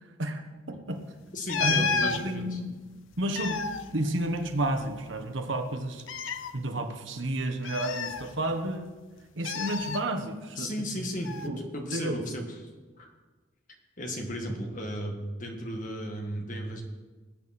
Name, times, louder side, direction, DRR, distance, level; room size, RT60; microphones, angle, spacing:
voice 1, 0.2-1.0 1.6-2.8 3.2-3.6 3.9-6.0 6.5-8.9 9.4-10.7 11.0-11.1 11.5-11.6 11.9-12.3, right 1 dB, 75° right, 6 dB, 1.3 m, -31 dB
voice 2, 1.3-2.6 10.6-12.7 13.0-13.1 14.0-16.8, equal, 40° left, 2 dB, 1.8 m, -35 dB
sound 1, 1.5-2.2 3.1-4.8 5.1-5.2 6.0-6.5 7.6-8.7 9.4-10.0 11.2-11.5, left 5 dB, 80° left, 0.7 m, -31 dB
18.5 x 8.8 x 4.3 m, 1.3 s
head